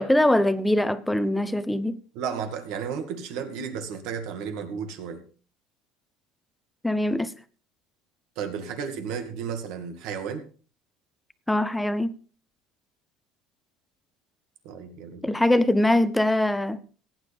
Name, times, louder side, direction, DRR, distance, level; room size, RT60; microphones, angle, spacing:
voice 1, 0.0-2.0 6.8-7.3 11.5-12.1 15.2-16.8, left 1 dB, 5° left, 0.8 m, -22 dB
voice 2, 2.1-5.2 8.4-10.5 14.6-15.3, right 7 dB, 70° right, 2.1 m, -33 dB
16.5 x 9.6 x 3.5 m
cardioid pair, 125°, 0 cm